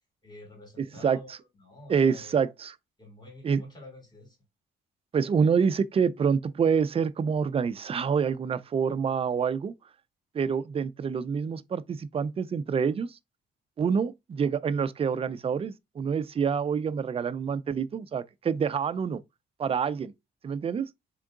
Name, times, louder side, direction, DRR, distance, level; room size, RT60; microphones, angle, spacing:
voice 1, 0.2-2.4 3.0-4.4, left 2 dB, 20° left, 2.3 m, -48 dB
voice 2, 0.8-1.2 1.9-2.7 3.4-3.6 5.1-9.7 10.3-13.2 13.8-19.2 19.6-20.1 20.4-20.9, right 6 dB, 30° right, 0.4 m, -27 dB
3.7 x 3.5 x 3.7 m
cardioid pair, 90°, 20 cm